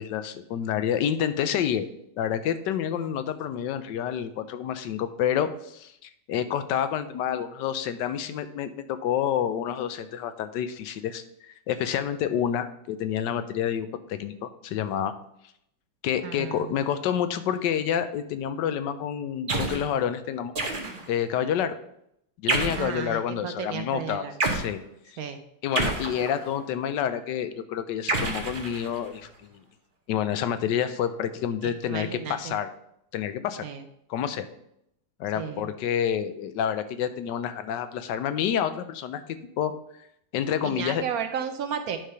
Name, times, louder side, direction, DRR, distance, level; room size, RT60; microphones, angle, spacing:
voice 1, 0.0-1.9 2.2-5.9 6.3-11.2 11.7-15.1 16.0-20.5 21.1-21.8 22.4-24.2 24.5-24.8 25.1-25.2 25.6-29.6 30.1-32.7 33.1-33.7 34.1-34.5 35.2-39.2 39.6-39.7 40.3-41.0, left 9 dB, 85° left, 11 dB, 1.3 m, -28 dB
voice 2, 16.2-16.7 22.7-24.3 25.2-25.4 31.6-32.6 33.6-33.8 35.3-35.7 40.6-42.0, right 7 dB, 65° right, 7 dB, 1.0 m, -33 dB
sound 1, 19.5-19.9 20.5-21.2 22.5-23.0 24.4-24.7 25.7-26.6 28.1-29.1, right 2 dB, 35° right, 1.0 m, -28 dB
9.2 x 3.3 x 5.5 m, 0.74 s
omnidirectional pair, 1.9 m